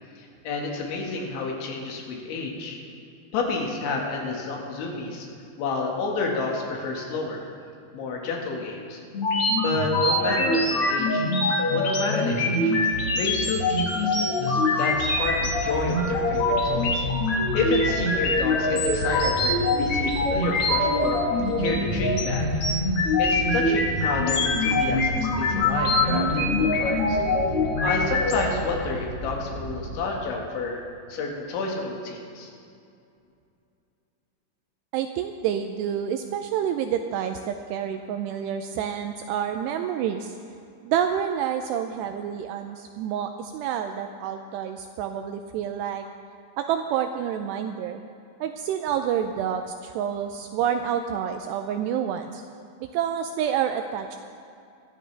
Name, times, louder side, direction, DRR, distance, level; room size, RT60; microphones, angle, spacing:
voice 1, 0.2-2.8 3.3-5.3 5.6-7.5 7.9-9.0 9.6-11.2 11.7-12.7 13.1-17.0 17.5-21.2 21.6-22.5 23.2-27.2 27.8-30.8 31.1-32.5, left 3 dB, 80° left, 0 dB, 4.2 m, -30 dB
sound 1, 9.1-28.4, left 2 dB, 65° left, 1.4 m, -24 dB
sound 2, 15.0-30.1, right 2 dB, 65° right, 3.4 m, -35 dB
voice 2, 34.9-40.4 40.9-46.1 46.6-48.0 48.4-52.4 52.8-54.2, right 9 dB, 85° right, 6 dB, 2.4 m, -28 dB
23.5 x 13.0 x 3.4 m, 2.5 s
omnidirectional pair, 5.3 m